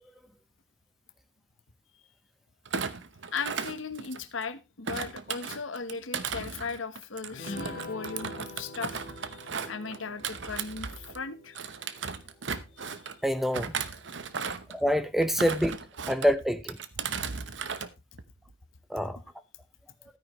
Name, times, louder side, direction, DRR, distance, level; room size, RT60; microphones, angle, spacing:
Thump thud, 2.7-4.4 4.9-11.2 11.5-13.2 13.5-14.8 15.2-16.3 16.7-17.9 18.2-18.5, right 6 dB, 65° right, 0.9 m, -36 dB
voice 1, 3.3-9.4 9.7-11.6 12.7-13.1 14.4-14.5, left 5 dB, 80° left, 1.2 m, -37 dB
sound 1, 7.3-13.0, left 2 dB, 45° left, 3.4 m, -45 dB
voice 2, 13.2-13.7 14.7-15.8 16.1-16.8 18.9-19.2, equal, ahead, 0.7 m, -26 dB
13.0 x 9.4 x 3.1 m
head